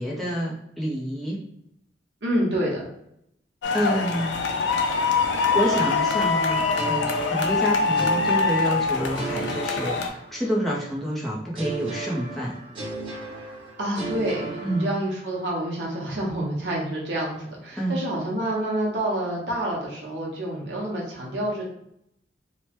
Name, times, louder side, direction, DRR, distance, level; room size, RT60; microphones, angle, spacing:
voice 1, 0.0-1.4 3.7-4.4 4.8-4.9 5.5-12.6 14.6-15.0 17.8-18.0, equal, ahead, -5 dB, 0.5 m, -28 dB
voice 2, 2.2-2.9 13.8-21.6, right 1 dB, 70° right, -4 dB, 1.0 m, -28 dB
sound 1, 3.6-10.1, left 4 dB, 85° left, 0.4 m, -24 dB
sound 2, 6.8-10.7 11.5-15.4, right 3 dB, 30° right, 1.0 m, -35 dB
3.1 x 2.1 x 2.9 m, 0.75 s
head